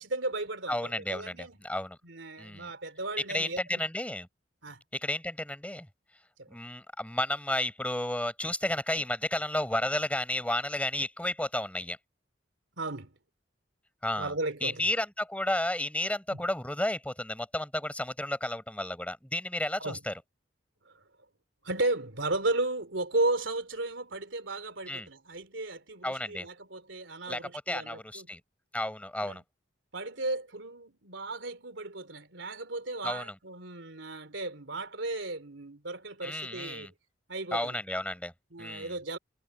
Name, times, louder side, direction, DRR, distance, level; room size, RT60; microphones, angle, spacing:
voice 1, 0.0-1.6 2.0-3.8 4.6-4.8 6.4-6.6 12.8-13.1 14.2-14.9 16.3-16.4 19.8-20.0 20.8-20.9 21.6-28.3 29.2-29.4 29.9-36.9 37.3-37.8 38.5-39.2, right 2 dB, 85° right, 3.2 m, -35 dB
voice 2, 0.7-2.0 2.4-2.7 3.3-4.3 4.9-5.9 6.5-12.0 14.0-14.3 14.6-20.1 24.9-25.1 26.0-26.5 27.3-27.4 27.7-28.4 28.7-29.4 33.0-33.3 36.2-36.9 37.5-38.3 38.6-39.0, left 1 dB, 5° left, 6.3 m, -32 dB
head